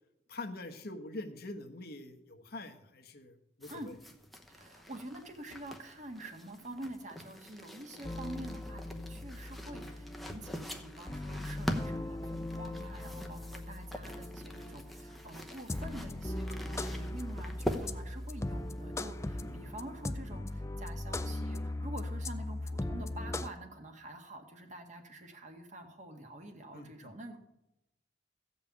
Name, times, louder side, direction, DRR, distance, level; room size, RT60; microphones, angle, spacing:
voice 1, 0.3-3.8 19.4-19.6 26.7-27.1, left 2 dB, 55° left, 6 dB, 1.1 m, -44 dB
sound 1, 3.6-20.1, equal, ahead, 0.9 m, -44 dB
voice 2, 4.5-27.4, right 1 dB, 40° right, 5 dB, 1.6 m, -47 dB
sound 2, 8.0-23.5, left 1 dB, 15° left, 0.4 m, -39 dB
14.5 x 5.4 x 8.4 m, 0.90 s
head